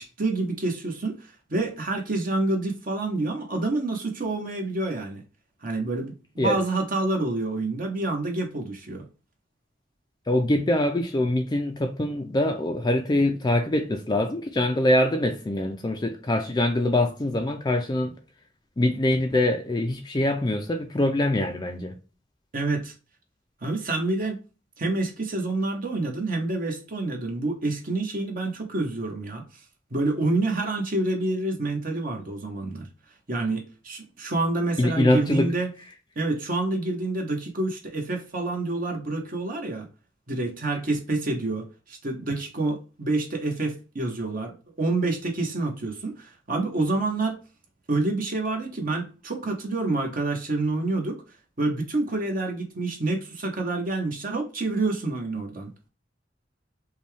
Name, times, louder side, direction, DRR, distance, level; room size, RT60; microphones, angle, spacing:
voice 1, 0.0-5.2 5.6-9.0 22.5-22.9 23.6-24.4 24.8-29.4 29.9-32.9 33.3-35.7 36.2-39.9 40.3-47.4 47.9-51.2 51.6-55.7, right 2 dB, 50° right, 1.2 m, -28 dB
voice 2, 10.3-18.1 18.8-22.0 34.8-35.5, left 1 dB, 25° left, 0.5 m, -24 dB
5.2 x 2.3 x 3.3 m
head